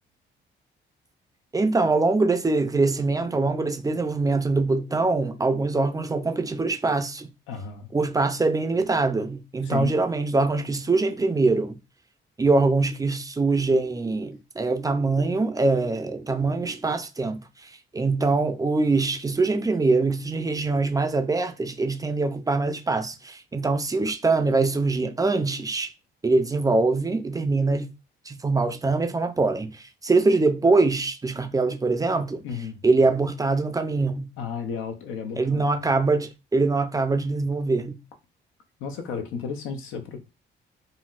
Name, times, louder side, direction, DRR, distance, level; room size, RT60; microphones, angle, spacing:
voice 1, 1.5-7.3 7.9-11.8 12.4-25.9 26.2-27.9 28.3-32.4 32.8-34.3 35.4-38.0, right 3 dB, 20° right, 0.4 m, -23 dB
voice 2, 7.5-7.9 9.6-9.9 32.4-32.8 34.4-35.6 38.8-40.2, left 6 dB, 90° left, 0.6 m, -33 dB
3.9 x 2.0 x 2.4 m
cardioid pair, 90°, 20 cm